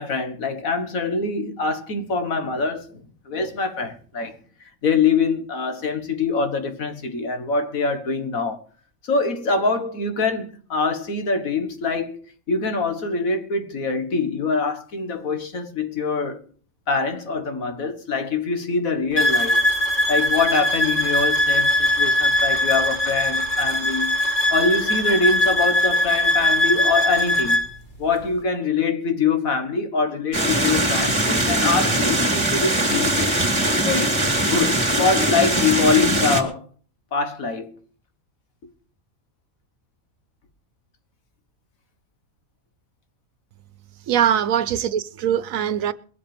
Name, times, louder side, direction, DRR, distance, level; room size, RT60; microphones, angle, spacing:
voice 1, 0.0-4.4 4.8-8.6 9.0-12.2 12.5-16.4 16.9-19.6 20.1-24.2 24.5-27.6 28.0-33.1 33.8-36.6 37.1-37.7, left 4 dB, 85° left, 2.0 m, -24 dB
sound 1, 19.2-27.7, left 1 dB, 35° left, 3.1 m, -20 dB
sound 2, 30.3-36.4, right 1 dB, 20° right, 2.4 m, -21 dB
voice 2, 44.1-45.9, right 9 dB, 80° right, 1.2 m, -22 dB
21.5 x 7.9 x 5.1 m
omnidirectional pair, 1.4 m